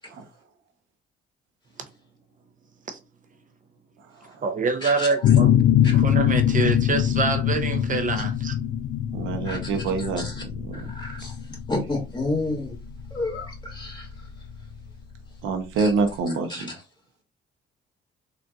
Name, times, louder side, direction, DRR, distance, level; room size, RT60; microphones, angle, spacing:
voice 1, 4.4-5.5 5.9-8.5, right 4 dB, 40° right, 0.6 m, -25 dB
sound 1, 5.2-14.6, left 10 dB, 80° left, 0.4 m, -23 dB
voice 2, 9.1-10.9 15.4-16.8, right 4 dB, 85° right, 0.8 m, -27 dB
voice 3, 10.7-11.4 11.7-12.8 13.1-14.1 15.8-15.9 16.5-16.6, left 2 dB, 20° left, 1.9 m, -30 dB
3.8 x 2.5 x 2.3 m
cardioid pair, 90°, 20 cm